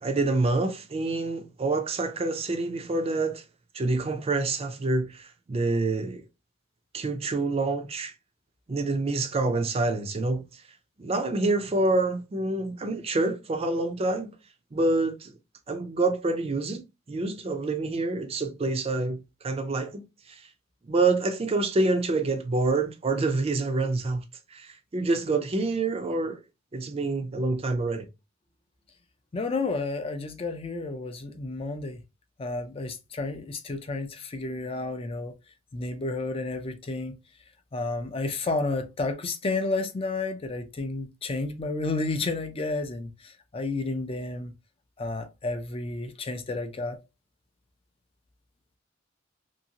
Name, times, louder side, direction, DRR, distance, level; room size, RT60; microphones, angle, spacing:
voice 1, 0.0-3.4 3.7-6.2 6.9-8.1 8.7-10.6 11.0-14.3 14.7-15.3 15.7-20.5 20.8-24.2 24.5-26.4 26.7-28.1, right 3 dB, 30° right, 0.4 m, -27 dB
voice 2, 29.3-32.0 32.4-35.3 35.7-37.1 37.7-44.5 45.0-47.0, left 3 dB, 30° left, 0.4 m, -31 dB
2.8 x 2.7 x 2.7 m
head